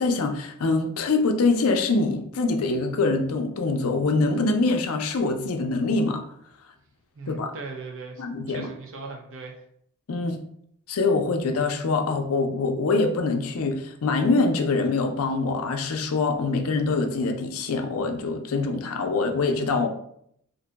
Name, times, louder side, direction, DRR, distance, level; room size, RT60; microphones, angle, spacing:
voice 1, 0.0-6.2 7.3-7.5 8.2-8.7 10.1-10.4 10.9-19.9, left 3 dB, 65° left, 5 dB, 0.5 m, -24 dB
voice 2, 7.1-9.6, right 3 dB, 60° right, 1 dB, 0.5 m, -39 dB
2.6 x 2.2 x 3.8 m, 0.70 s
head